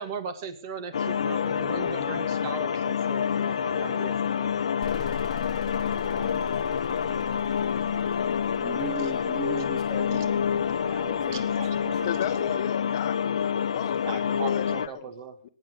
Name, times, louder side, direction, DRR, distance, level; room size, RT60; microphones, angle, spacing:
voice 1, 0.0-4.5 9.0-9.1 10.1-10.3 10.9-12.3 14.1-15.4, right 6 dB, 40° right, 10 dB, 2.2 m, -38 dB
sound 1, 0.9-14.9, left 7 dB, 85° left, 0.9 m, -27 dB
sound 2, 4.8-12.4, left 8 dB, 15° left, 1.0 m, -43 dB
voice 2, 6.1-7.2 8.5-12.0 12.3-12.6, right 4 dB, 15° right, 4 dB, 2.8 m, -40 dB
voice 3, 12.0-13.2 13.7-15.1 15.4-15.5, left 11 dB, 45° left, 10 dB, 1.2 m, -34 dB
22.5 x 9.7 x 5.5 m, 0.41 s
hypercardioid pair, 165°, 3 cm